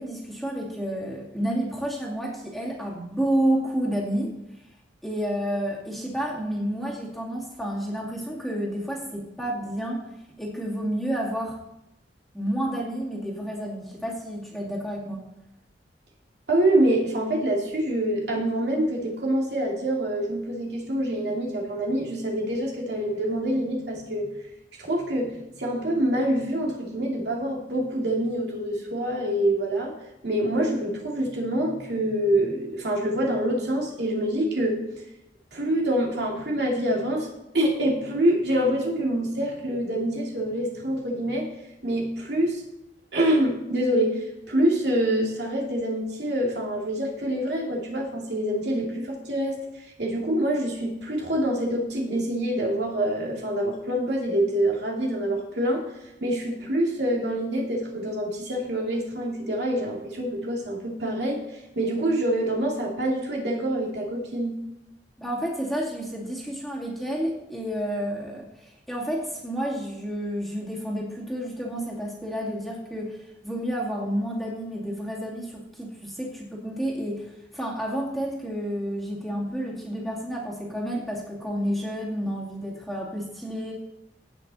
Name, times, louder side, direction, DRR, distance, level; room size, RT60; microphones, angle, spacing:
voice 1, 0.0-4.6 5.0-10.1 10.4-11.6 12.3-15.3 65.2-83.7, equal, ahead, -4 dB, 2.4 m, -30 dB
voice 2, 16.5-24.3 24.8-29.9 30.2-34.8 35.5-37.3 37.5-41.5 41.8-42.6 43.1-49.6 50.0-55.8 56.2-61.4 61.8-64.6, right 1 dB, 70° right, -2 dB, 2.5 m, -26 dB
17.5 x 5.9 x 4.1 m, 0.87 s
head